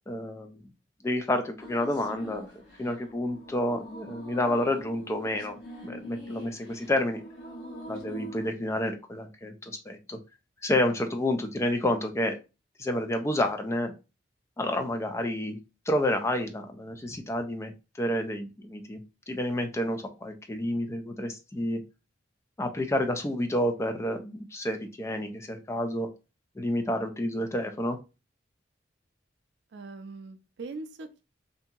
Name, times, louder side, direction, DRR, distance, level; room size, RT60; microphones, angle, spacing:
voice 1, 0.1-0.6 1.0-5.6 5.8-7.2 7.9-10.2 10.6-12.4 12.8-13.9 14.6-15.6 15.9-17.7 18.0-19.0 19.3-21.8 22.6-26.1 26.6-28.0, left 1 dB, 15° left, 6 dB, 0.3 m, -29 dB
sound 1, 1.6-8.5, right 1 dB, 70° left, 1.7 m, -43 dB
voice 2, 29.7-31.2, right 3 dB, 65° right, 9 dB, 0.4 m, -41 dB
2.7 x 2.6 x 2.3 m, 0.28 s
head